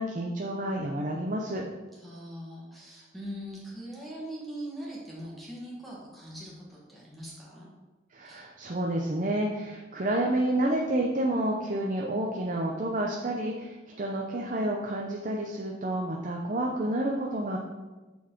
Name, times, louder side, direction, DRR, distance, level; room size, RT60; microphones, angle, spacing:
voice 1, 0.0-1.6 8.1-17.6, right 1 dB, 40° right, 0 dB, 0.6 m, -29 dB
voice 2, 1.9-7.7 8.2-8.4, right 1 dB, ahead, -6 dB, 1.5 m, -41 dB
7.1 x 4.1 x 4.5 m, 1.2 s
head